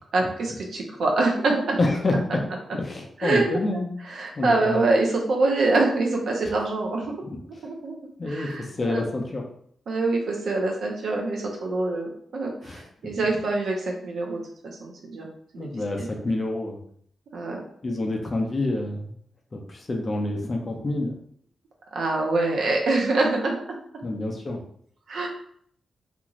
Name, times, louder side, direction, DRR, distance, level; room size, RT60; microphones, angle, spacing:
voice 1, 0.1-1.8 2.3-2.4 3.2-3.4 4.1-7.1 7.6-7.9 8.3-9.0 9.9-15.3 15.5-15.7 16.0-16.1 17.3-17.6 21.9-23.8 25.1-25.3, right 2 dB, 65° right, 0 dB, 0.6 m, -25 dB
voice 2, 1.8-2.4 2.7-3.9 4.4-4.8 6.4-6.5 8.2-9.4 12.6-12.8 15.5-16.8 17.8-19.1 19.5-21.2 24.0-24.6, left 2 dB, 25° left, 1 dB, 0.4 m, -27 dB
2.5 x 2.4 x 3.0 m, 0.63 s
wide cardioid pair, 165°, 0 cm